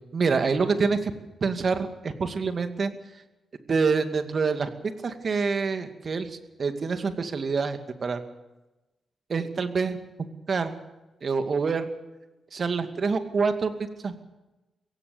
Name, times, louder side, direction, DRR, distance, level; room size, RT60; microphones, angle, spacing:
voice 1, 0.1-1.1 1.4-2.9 3.7-4.7 5.0-8.2 9.3-10.0 10.5-10.7 11.2-11.9 12.5-13.7 14.0-14.2, right 4 dB, 55° right, 8 dB, 2.3 m, -26 dB
23.5 x 16.5 x 7.0 m, 1.0 s
hypercardioid pair, 45°, 0 cm